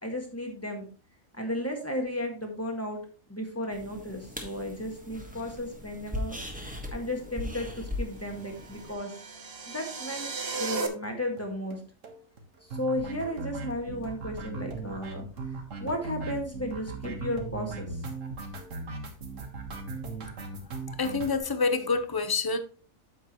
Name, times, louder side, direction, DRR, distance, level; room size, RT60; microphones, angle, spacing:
voice 1, 0.0-0.8 1.3-3.0 3.3-6.4 6.9-9.1 9.7-10.3 10.6-11.8 12.7-15.3 15.8-18.0, left 1 dB, 10° left, 1.6 m, -34 dB
sound 1, 3.7-8.9, left 1 dB, 5° right, 1.3 m, -39 dB
sound 2, 8.3-10.9, right 4 dB, 50° right, 1.2 m, -35 dB
sound 3, 10.5-10.8 11.0-11.1 11.4-11.5 11.7-11.8 12.0-21.4, right 3 dB, 65° right, 1.8 m, -38 dB
voice 2, 21.0-22.6, left 4 dB, 35° left, 0.3 m, -27 dB
8.8 x 6.9 x 3.0 m
omnidirectional pair, 1.5 m